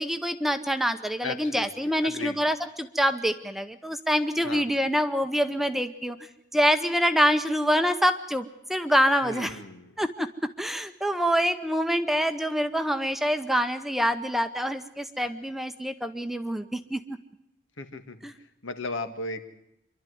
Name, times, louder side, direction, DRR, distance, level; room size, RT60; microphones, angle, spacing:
voice 1, 0.0-6.2 6.5-9.6 10.0-10.3 10.6-17.2 18.2-18.3, equal, ahead, 8 dB, 0.8 m, -26 dB
voice 2, 1.2-1.7 2.0-2.4 4.4-4.7 9.2-9.9 17.8-19.5, left 3 dB, 80° left, 8 dB, 1.9 m, -36 dB
26.0 x 12.0 x 9.4 m, 0.87 s
head